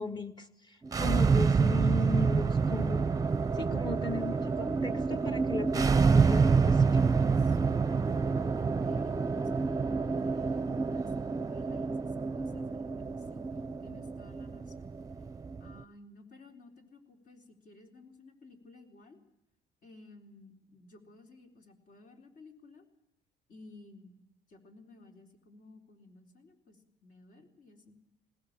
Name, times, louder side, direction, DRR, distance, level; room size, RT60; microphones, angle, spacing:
voice 1, 0.0-3.1 3.5-7.0, left 3 dB, 25° left, 8 dB, 2.0 m, -37 dB
sound 1, 0.8-15.8, right 5 dB, 20° right, 0.8 m, -28 dB
voice 2, 7.1-15.0 15.6-19.2 19.8-22.9 23.5-24.1 24.5-28.0, left 2 dB, 50° left, 3 dB, 4.0 m, -56 dB
19.5 x 19.5 x 7.5 m, 0.88 s
cardioid pair, 110°, 17 cm